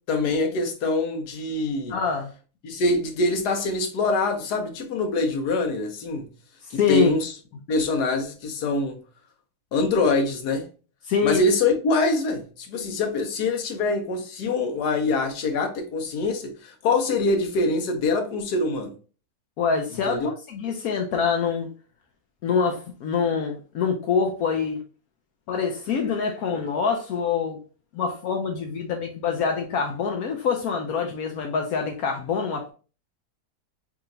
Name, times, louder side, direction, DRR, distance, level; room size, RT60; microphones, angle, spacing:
voice 1, 0.1-2.0 2.6-6.3 6.7-7.3 7.7-9.0 9.7-10.7 11.2-18.9 20.1-20.3, left 2 dB, 90° left, 1.4 m, -24 dB
voice 2, 1.9-2.3 6.7-7.1 11.1-11.4 19.6-21.7 22.4-24.8 25.5-27.6 27.9-32.7, left 6 dB, 75° left, 1.0 m, -25 dB
4.8 x 2.8 x 2.5 m
omnidirectional pair, 1.7 m